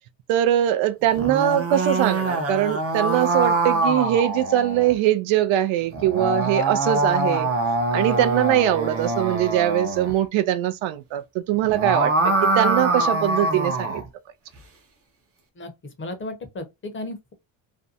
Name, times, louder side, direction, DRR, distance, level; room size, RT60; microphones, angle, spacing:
voice 1, 0.3-7.5 7.9-14.0, right 12 dB, 75° right, 0.5 m, -22 dB
sound 1, 1.1-4.9 5.9-10.1 11.6-14.1, right 2 dB, 30° right, 0.6 m, -24 dB
voice 2, 16.0-17.3, left 2 dB, 25° left, 0.7 m, -34 dB
2.5 x 2.2 x 2.6 m
cardioid pair, 110°, 47 cm